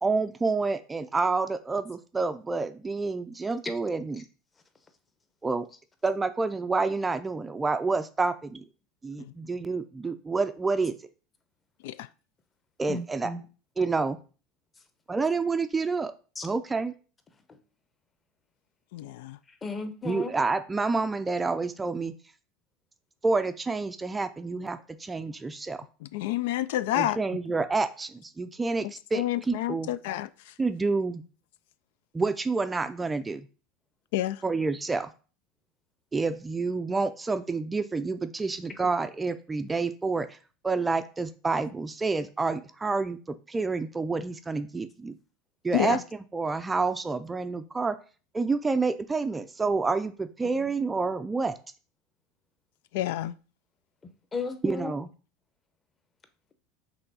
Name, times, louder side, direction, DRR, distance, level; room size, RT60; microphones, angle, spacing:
voice 1, 0.0-4.2 5.4-5.7 6.0-8.6 9.0-10.9 12.8-13.3 13.8-14.2 15.1-16.1 16.4-16.9 20.0-22.1 23.2-25.8 26.9-29.9 30.6-31.2 32.1-33.5 34.4-35.1 36.1-40.4 40.6-45.1 45.6-46.0 46.3-48.0 48.3-51.5 54.6-55.1, right 3 dB, 10° right, 0.4 m, -28 dB
voice 2, 12.9-13.4 16.4-16.5 19.6-20.3 54.3-54.9, left 4 dB, 15° left, 0.8 m, -34 dB
voice 3, 18.9-19.4 26.1-27.2 28.8-30.3 34.1-34.4 45.7-46.0 52.9-53.3, left 14 dB, 75° left, 0.3 m, -29 dB
5.7 x 3.5 x 5.4 m
supercardioid pair, 150°, 0 cm